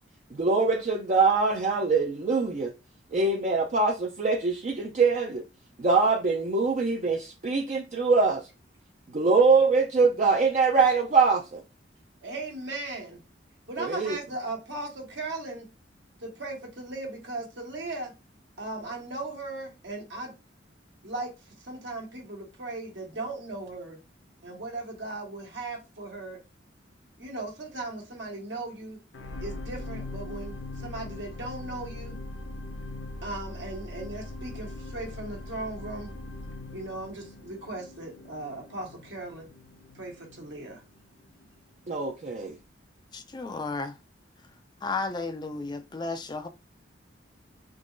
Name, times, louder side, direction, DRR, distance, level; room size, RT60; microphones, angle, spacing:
voice 1, 0.3-2.7 3.1-5.4 5.8-8.5 9.1-11.6 13.8-14.2 41.9-42.6, right 4 dB, 40° right, 0.5 m, -23 dB
voice 2, 12.2-13.2 13.7-15.7 16.2-18.1 18.6-20.3 21.0-24.0 24.4-26.4 27.2-29.0 29.4-32.1 33.2-36.1 36.7-39.5 39.9-40.8, right 2 dB, 70° right, 1.3 m, -37 dB
sound 1, 29.1-41.5 42.1-42.2, left 2 dB, 75° left, 0.6 m, -41 dB
voice 3, 43.1-43.9 44.8-46.5, left 3 dB, 25° left, 0.4 m, -33 dB
3.7 x 3.0 x 2.5 m
head